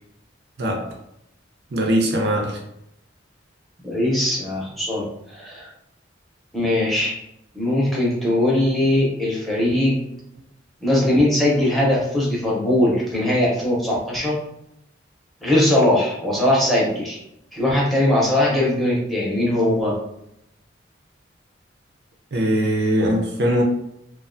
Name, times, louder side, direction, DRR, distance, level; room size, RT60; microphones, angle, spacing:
voice 1, 0.6-0.9 1.7-2.6 22.3-23.6, equal, 60° right, 0.5 m, -21 dB
voice 2, 3.8-5.7 6.5-7.1 7.5-10.0 10.8-14.4 15.4-17.2 17.5-19.9, left 1 dB, ahead, 0.6 m, -20 dB
2.4 x 2.2 x 2.5 m
head